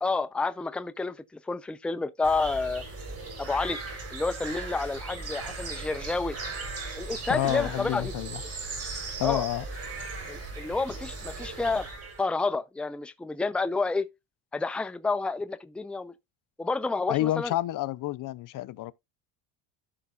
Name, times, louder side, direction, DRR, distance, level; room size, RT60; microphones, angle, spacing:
voice 1, 0.0-1.2 1.4-2.8 3.4-3.8 4.1-6.4 7.0-8.1 9.2-9.5 10.3-11.9 12.2-14.1 14.5-16.1 16.6-17.5, left 3 dB, 5° left, 0.5 m, -29 dB
sound 1, 2.2-12.2, right 3 dB, 40° right, 3.4 m, -38 dB
voice 2, 7.3-8.4 9.2-9.7 17.1-18.9, left 15 dB, 55° left, 0.6 m, -29 dB
13.5 x 5.5 x 2.4 m
cardioid pair, 110°, 39 cm